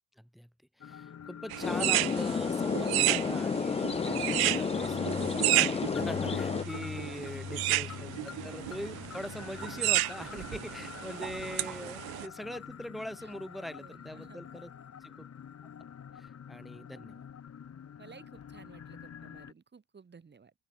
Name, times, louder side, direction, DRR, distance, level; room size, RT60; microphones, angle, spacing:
voice 1, 0.2-0.5 0.8-14.7 15.0-15.3 15.6-15.7 16.2-17.3, equal, ahead, 1.5 m, -42 dB
sound 1, 0.8-19.5, left 8 dB, 40° left, 2.6 m, -45 dB
sound 2, 1.5-12.3, right 19 dB, 75° right, 0.6 m, -32 dB
sound 3, 1.6-6.6, left 5 dB, 15° left, 0.4 m, -31 dB
voice 2, 13.8-14.4 18.0-20.5, right 5 dB, 30° right, 2.9 m, -55 dB
open air
cardioid pair, 115°, 38 cm